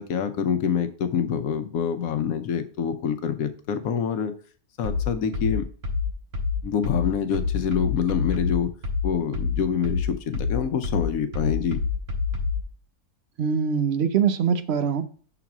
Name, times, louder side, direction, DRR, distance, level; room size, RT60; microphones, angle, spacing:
voice 1, 0.0-4.3 4.8-5.7 6.6-8.7 9.0-11.8, left 7 dB, 70° left, 1.1 m, -26 dB
sound 1, 4.8-12.7, left 4 dB, 75° right, 1.8 m, -27 dB
voice 2, 13.4-15.0, right 7 dB, 60° right, 0.7 m, -23 dB
6.0 x 4.0 x 6.0 m
omnidirectional pair, 1.6 m